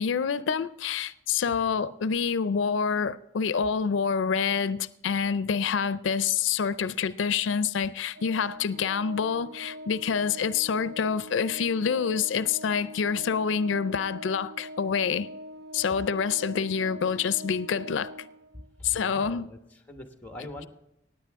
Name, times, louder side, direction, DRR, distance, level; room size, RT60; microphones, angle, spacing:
voice 1, 0.0-15.3 15.7-18.1 18.8-19.5, left 6 dB, 90° left, 0.4 m, -27 dB
voice 2, 1.4-1.9 18.8-20.7, left 1 dB, 10° left, 1.1 m, -43 dB
Organ, 8.1-18.8, equal, 55° right, 0.4 m, -43 dB
16.5 x 9.7 x 3.5 m
head